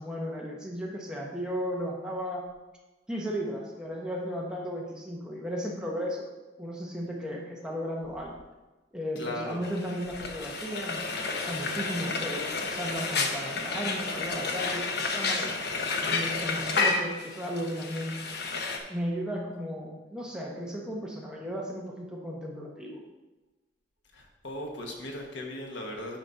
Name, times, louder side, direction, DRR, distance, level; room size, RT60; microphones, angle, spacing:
voice 1, 0.0-2.4 3.1-6.3 6.6-8.4 8.9-15.5 16.0-18.2 18.9-23.0, equal, 5° right, -3 dB, 1.0 m, -35 dB
voice 2, 9.2-9.6 24.1-26.2, left 1 dB, 80° left, 1 dB, 1.4 m, -37 dB
Frying (food), 9.6-18.8, left 4 dB, 60° left, 0.9 m, -31 dB
8.9 x 4.1 x 5.6 m, 1.1 s
head